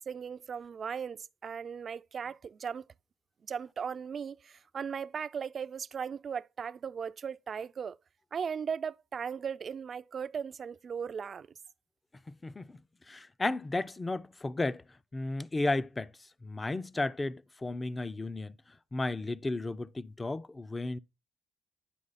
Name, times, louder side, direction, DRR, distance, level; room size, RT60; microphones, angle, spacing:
voice 1, 0.1-2.8 3.5-8.0 8.3-11.5, right 7 dB, 50° right, 0.3 m, -37 dB
voice 2, 12.3-12.8 13.1-14.8 15.1-16.1 16.4-18.5 18.9-21.0, left 2 dB, 20° left, 0.4 m, -33 dB
9.9 x 4.8 x 4.0 m
cardioid pair, 90°, 0 cm